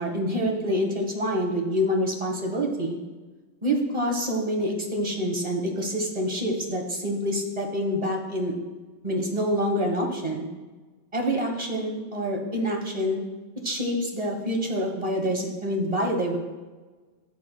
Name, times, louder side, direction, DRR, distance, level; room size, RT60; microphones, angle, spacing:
voice 1, 0.0-3.0 3.6-8.5 9.0-10.4 11.1-13.2 13.6-16.4, equal, 30° right, 0 dB, 1.4 m, -26 dB
14.5 x 7.0 x 2.3 m, 1.3 s
omnidirectional pair, 1.2 m